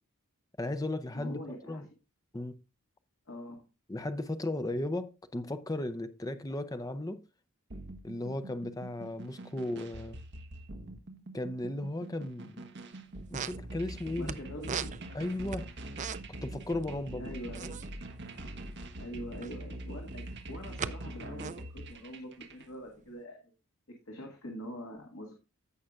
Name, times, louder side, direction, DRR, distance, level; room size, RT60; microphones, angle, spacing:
voice 1, 0.6-1.4 1.7-1.9 2.3-2.6 3.9-7.2 8.0-10.2 11.3-12.7 13.3-14.3 15.1-15.7 16.4-17.3, left 1 dB, 15° left, 0.6 m, -35 dB
voice 2, 1.1-1.9 3.3-3.6 14.2-15.0 17.1-17.8 19.0-23.4 24.1-25.3, equal, 60° left, 1.9 m, -44 dB
sound 1, 7.7-22.6, right 1 dB, 50° right, 1.2 m, -44 dB
sound 2, 12.9-13.0 13.2-14.4 14.6-16.5 16.7-16.8 17.1-19.6 20.2-20.9 21.2-23.1, right 7 dB, 35° right, 0.4 m, -39 dB
15.0 x 5.7 x 2.5 m
head